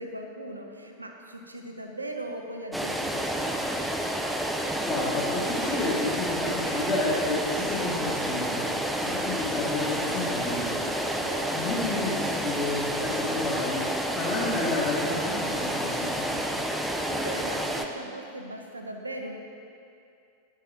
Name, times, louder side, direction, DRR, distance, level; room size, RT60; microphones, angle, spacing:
voice 1, 0.0-3.8 11.2-11.7 17.1-19.3, right 1 dB, 80° right, 3 dB, 0.8 m, -39 dB
sound 1, 2.7-17.8, right 1 dB, 5° right, 0.6 m, -29 dB
voice 2, 4.9-8.7 8.9-10.9 11.2-16.5, left 2 dB, 30° left, -9 dB, 1.9 m, -31 dB
10.5 x 7.4 x 3.7 m, 2.5 s
figure-of-eight pair, 90°, 0 cm